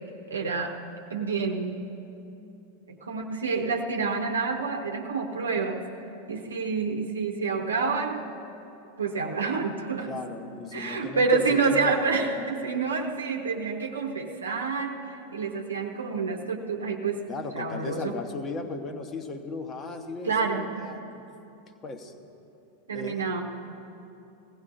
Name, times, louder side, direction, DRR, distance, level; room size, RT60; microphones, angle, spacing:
voice 1, 0.3-0.8 1.1-1.8 2.9-5.8 6.3-8.2 9.0-10.1 10.7-15.1 15.3-17.3 17.5-18.2 20.2-20.7 22.9-23.4, right 4 dB, 70° right, 2 dB, 0.9 m, -28 dB
voice 2, 10.1-11.9 17.3-21.0 21.8-22.1 22.9-23.2, left 3 dB, 25° left, 7 dB, 1.1 m, -36 dB
20.5 x 16.5 x 2.6 m, 2.8 s
figure-of-eight pair, 90°, 0 cm